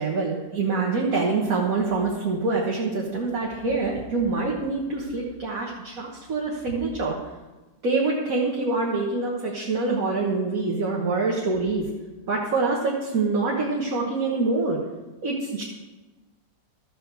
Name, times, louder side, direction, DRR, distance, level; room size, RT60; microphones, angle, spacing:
voice 1, 0.0-7.2 7.8-11.9 12.3-14.8 15.2-15.6, right 3 dB, 55° right, -2 dB, 1.6 m, -25 dB
13.5 x 4.7 x 6.8 m, 1.1 s
omnidirectional pair, 1.9 m